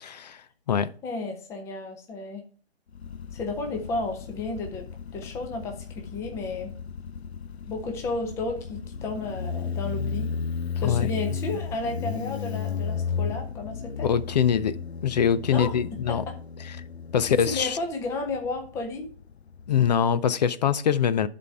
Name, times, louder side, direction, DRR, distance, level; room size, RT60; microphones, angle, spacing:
voice 1, 0.0-0.9 10.8-11.1 14.0-16.2 17.1-17.8 19.7-21.3, left 8 dB, 40° left, 0.5 m, -24 dB
voice 2, 1.0-2.4 3.3-4.9 5.1-6.7 7.7-10.3 10.8-14.1 15.5-15.8 16.1-16.4 17.2-19.1, left 3 dB, 10° left, 0.7 m, -33 dB
Motorcycle, 2.9-20.1, left 6 dB, 90° left, 0.5 m, -34 dB
11.0 x 4.3 x 4.6 m
hypercardioid pair, 140°, 32 cm